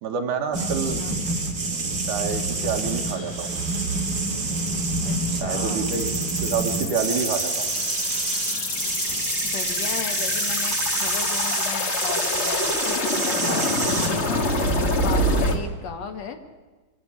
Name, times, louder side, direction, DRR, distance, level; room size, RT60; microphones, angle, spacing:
voice 1, 0.0-1.0 2.1-3.6 5.4-7.7 13.5-13.8, right 5 dB, 70° right, 4 dB, 3.1 m, -28 dB
sound 1, 0.5-14.1, right 3 dB, 30° right, 2.7 m, -28 dB
voice 2, 0.6-1.2 5.0-6.1 9.4-14.6 15.0-16.4, left 6 dB, 60° left, 6 dB, 2.1 m, -36 dB
sound 2, 2.0-12.1, left 3 dB, 85° left, 5.6 m, -45 dB
sound 3, 5.9-15.6, left 1 dB, 30° left, 1.3 m, -26 dB
25.0 x 12.5 x 10.0 m, 1.3 s
omnidirectional pair, 3.8 m